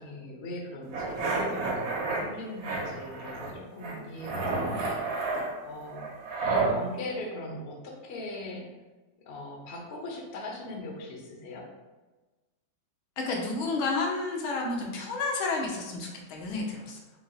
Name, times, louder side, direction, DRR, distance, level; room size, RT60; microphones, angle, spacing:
voice 1, 0.0-5.3 5.6-6.1 6.5-8.7 9.2-11.7, left 1 dB, 55° left, 0 dB, 0.7 m, -40 dB
sound 1, 0.9-2.2 2.6-3.5 3.8-6.7, right 3 dB, 80° right, 1.6 m, -30 dB
voice 2, 13.2-17.0, left 3 dB, 85° left, 0 dB, 1.6 m, -31 dB
4.6 x 3.9 x 2.3 m, 1.2 s
omnidirectional pair, 2.2 m